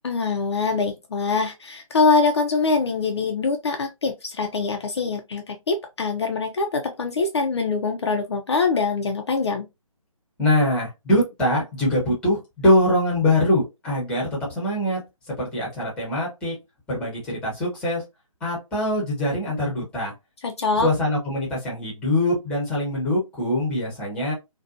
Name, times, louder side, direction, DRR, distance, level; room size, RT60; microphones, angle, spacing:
voice 1, 0.0-9.7 20.4-20.9, left 4 dB, 50° left, 0.5 m, -23 dB
voice 2, 10.4-15.0 15.4-16.5 16.9-18.0 18.4-20.1 20.8-24.3, left 1 dB, 5° left, 0.9 m, -23 dB
2.5 x 2.2 x 2.4 m
figure-of-eight pair, 155°, 18 cm